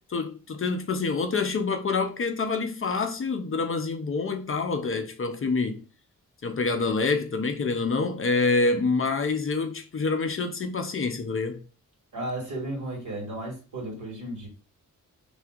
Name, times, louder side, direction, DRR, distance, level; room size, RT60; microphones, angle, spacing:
voice 1, 0.1-5.8 6.4-11.6, left 4 dB, 40° left, 0.6 m, -27 dB
voice 2, 12.1-14.5, right 1 dB, 60° right, 2.2 m, -34 dB
6.1 x 3.4 x 2.4 m
wide cardioid pair, 170°, 33 cm